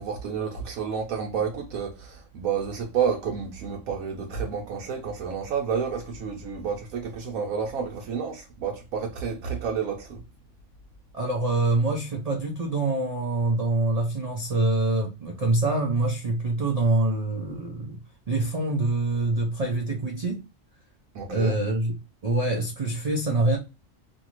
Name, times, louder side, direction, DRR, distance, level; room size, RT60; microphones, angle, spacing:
voice 1, 0.0-10.2 21.1-21.6, right 6 dB, 85° right, 1.1 m, -30 dB
voice 2, 11.1-18.0 18.3-20.4 21.3-21.9 22.2-23.6, right 2 dB, 65° right, 0.4 m, -25 dB
2.6 x 2.5 x 2.8 m
omnidirectional pair, 1.4 m